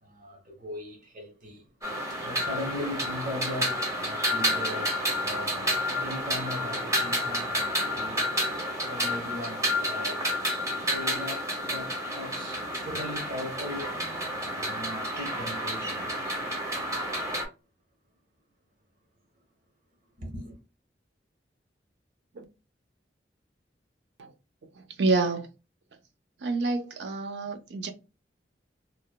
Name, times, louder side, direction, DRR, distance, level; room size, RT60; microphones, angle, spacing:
voice 1, 0.0-1.7 2.1-8.2 8.8-14.0 14.4-16.5 20.2-20.6, left 1 dB, 50° right, 0.8 m, -39 dB
sound 1, 1.8-17.5, equal, 20° right, 0.6 m, -30 dB
voice 2, 25.0-25.5 26.4-27.9, right 3 dB, 70° right, 0.5 m, -28 dB
3.0 x 2.1 x 2.2 m
head